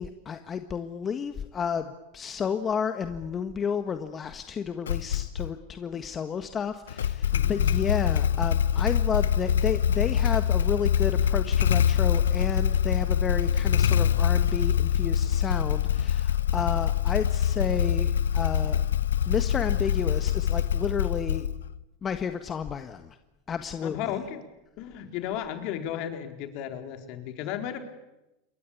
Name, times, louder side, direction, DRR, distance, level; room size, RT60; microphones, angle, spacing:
voice 1, 0.0-18.9 19.3-21.5 22.0-23.2 23.5-24.0, left 7 dB, 30° left, 8 dB, 1.6 m, -31 dB
Motorcycle / Engine starting, 4.9-5.5 6.9-21.8, left 9 dB, 85° left, 0.9 m, -24 dB
voice 2, 23.8-24.4 24.8-27.8, left 10 dB, 55° left, 6 dB, 4.2 m, -34 dB
28.0 x 22.5 x 8.6 m, 0.95 s
hypercardioid pair, 95°, 0 cm